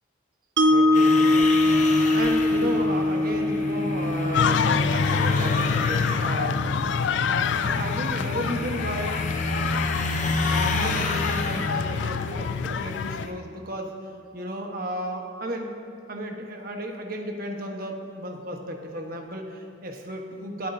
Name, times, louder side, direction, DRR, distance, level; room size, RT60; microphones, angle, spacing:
Mallet percussion, 0.6-6.7, left 2 dB, 65° right, 0.6 m, -23 dB
voice 1, 0.7-1.8 2.1-6.6 7.2-9.2 10.4-15.7 16.1-20.7, right 1 dB, 50° right, 2 dB, 1.3 m, -34 dB
sound 1, 0.9-13.3, left 2 dB, 40° left, 0.8 m, -30 dB
sound 2, 4.3-13.3, left 7 dB, 65° left, 0.3 m, -27 dB
22.0 x 8.4 x 2.8 m, 2.5 s
head